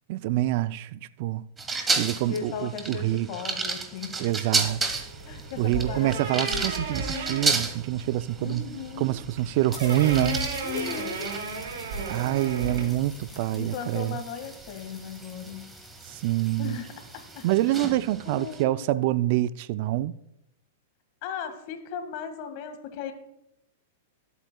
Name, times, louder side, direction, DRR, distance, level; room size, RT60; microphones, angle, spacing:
voice 1, 0.1-1.4 2.0-3.3 4.2-4.8 5.6-8.6 9.0-10.4 12.1-14.2 16.1-16.8 17.4-20.2, right 14 dB, 55° right, 0.4 m, -26 dB
sound 1, 1.6-18.6, right 4 dB, 15° right, 1.3 m, -34 dB
voice 2, 2.3-4.3 5.3-6.7 8.4-9.2 10.6-11.3 13.5-15.7 16.6-16.9 17.1-17.9 18.2-18.8 21.2-23.1, left 7 dB, 50° left, 1.8 m, -37 dB
sound 2, 4.6-13.3, right 2 dB, 70° right, 4.7 m, -35 dB
sound 3, 5.1-7.5 8.4-8.5 8.7-8.8 9.1-9.2 9.7-17.9, left 1 dB, 5° left, 2.5 m, -49 dB
19.5 x 8.2 x 2.3 m
hypercardioid pair, 115°, 0 cm